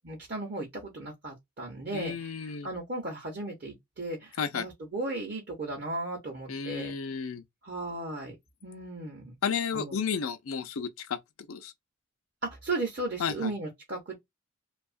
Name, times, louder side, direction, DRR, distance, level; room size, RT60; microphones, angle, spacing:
voice 1, 0.0-6.9 7.6-8.4 8.6-9.4 9.7-10.0 12.4-14.2, right 2 dB, 50° right, 0.7 m, -36 dB
voice 2, 1.9-2.7 4.4-4.7 6.5-7.4 9.4-11.2 11.5-11.7 13.2-13.5, left 6 dB, 85° left, 0.5 m, -32 dB
2.7 x 2.3 x 2.4 m
head